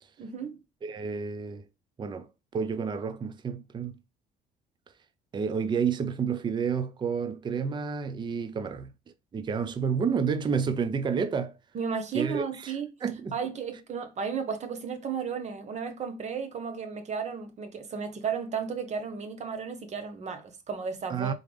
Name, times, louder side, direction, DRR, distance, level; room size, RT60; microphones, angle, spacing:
voice 1, 0.2-0.6 11.7-12.9 13.3-21.3, right 6 dB, 40° right, 1.0 m, -34 dB
voice 2, 0.8-1.7 2.0-4.0 5.3-8.9 9.3-11.6 12.1-12.7 13.0-13.4 21.1-21.3, right 6 dB, 25° right, 0.5 m, -30 dB
3.7 x 3.3 x 3.4 m
cardioid pair, 110°, 17 cm